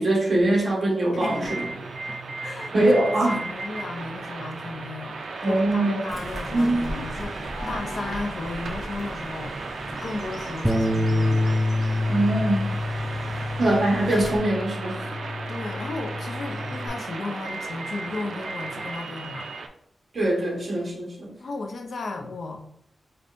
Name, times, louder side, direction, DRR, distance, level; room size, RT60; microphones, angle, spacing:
voice 1, 0.0-1.7 2.7-3.5 5.4-6.0 6.5-6.9 12.1-12.7 13.6-15.1 20.1-21.3, right 1 dB, 50° right, -2 dB, 1.0 m, -22 dB
voice 2, 1.1-1.6 2.4-2.7 3.4-9.6 9.9-11.5 13.3-13.4 15.5-19.5 21.4-22.6, left 3 dB, 60° left, 4 dB, 0.5 m, -35 dB
sound 1, 1.2-19.7, right 3 dB, 70° right, 0.4 m, -35 dB
Fowl / Bird, 6.1-14.4, equal, 40° left, 1.0 m, -38 dB
Bass guitar, 10.6-16.9, left 2 dB, 5° right, 0.4 m, -27 dB
5.1 x 2.2 x 2.5 m, 0.72 s
wide cardioid pair, 165°, 0 cm